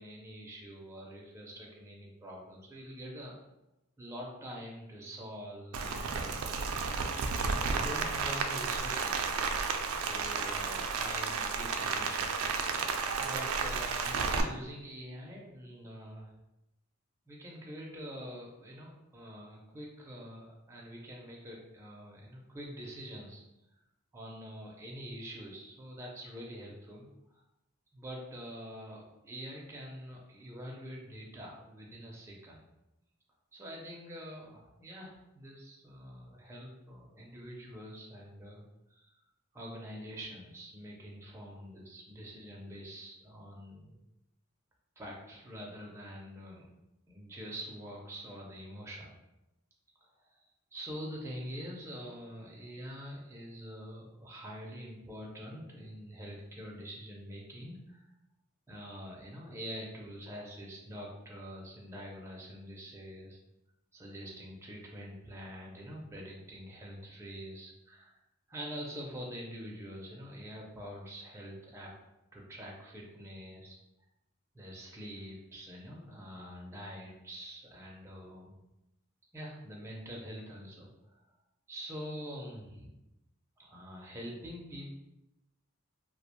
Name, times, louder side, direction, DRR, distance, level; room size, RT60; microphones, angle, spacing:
voice 1, 0.0-3.3 4.0-6.8 7.2-9.3 10.0-12.4 13.1-16.3 17.3-23.4 24.1-27.4 27.9-32.6 33.5-38.6 38.9-39.1 39.5-43.9 45.0-46.7 47.1-49.1 50.0-50.4 50.7-58.1 58.7-63.4 63.9-68.2 68.5-72.0 72.3-73.8 74.5-78.6 79.3-81.2 81.7-82.9 83.6-84.9, equal, 15° right, -2 dB, 0.4 m, -45 dB
Rain, 5.7-14.4, right 5 dB, 85° right, 0.3 m, -32 dB
2.3 x 2.1 x 2.9 m, 0.93 s
head